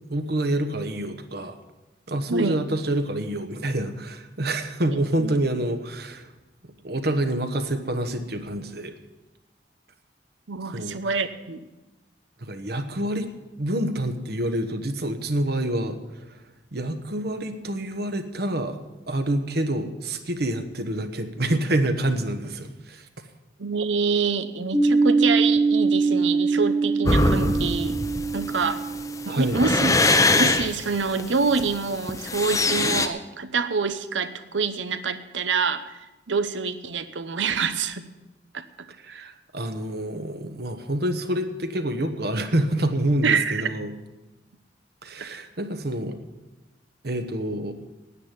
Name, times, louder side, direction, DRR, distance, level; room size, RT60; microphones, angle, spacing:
voice 1, 0.1-1.6 2.1-6.3 6.6-8.9 10.7-10.9 12.4-13.3 13.6-16.4 16.7-23.1 29.3-29.6 39.0-43.9 45.0-46.2 47.0-47.7, right 1 dB, 55° right, 7 dB, 1.2 m, -27 dB
voice 2, 2.3-2.6 5.2-5.3 10.5-11.6 23.6-28.0 28.3-28.8 29.3-30.0 30.3-36.0 36.3-38.0 38.5-38.6 39.1-39.3 43.2-43.7, right 5 dB, 85° right, 11 dB, 0.9 m, -26 dB
sound 1, 24.7-30.2, right 4 dB, 15° right, 1.3 m, -23 dB
sound 2, 27.1-33.1, left 2 dB, 20° left, 0.7 m, -22 dB
9.8 x 9.0 x 9.9 m, 1.1 s
head